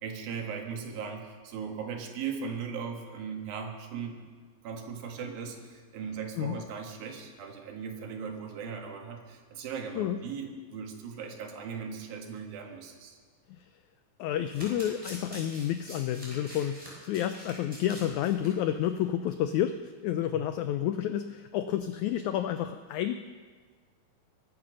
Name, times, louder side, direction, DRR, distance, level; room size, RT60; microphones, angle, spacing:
voice 1, 0.0-4.2 4.6-13.2 20.3-20.4, right 6 dB, 90° right, 2 dB, 3.5 m, -38 dB
voice 2, 14.2-16.8 17.0-19.8 20.0-23.2, left 11 dB, 90° left, 9 dB, 1.6 m, -30 dB
Domestic sounds home sounds, 14.2-18.5 18.8-19.0 19.3-19.4, equal, 10° right, 5.6 m, -45 dB
23.0 x 8.8 x 6.3 m, 1.5 s
omnidirectional pair, 4.0 m